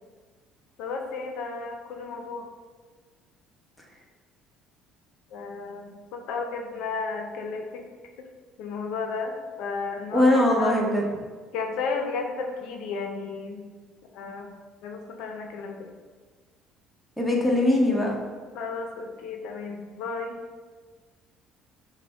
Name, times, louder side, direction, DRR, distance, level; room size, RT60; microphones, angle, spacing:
voice 1, 0.8-2.5 5.3-7.8 8.2-8.3 8.6-10.8 11.5-13.6 14.1-14.5 14.8-15.9 18.5-20.4, left 4 dB, 75° left, 3 dB, 0.5 m, -33 dB
voice 2, 10.1-11.1 17.2-18.2, left 1 dB, ahead, -3 dB, 0.9 m, -21 dB
5.9 x 2.1 x 3.4 m, 1.5 s
supercardioid pair, 90°, 0 cm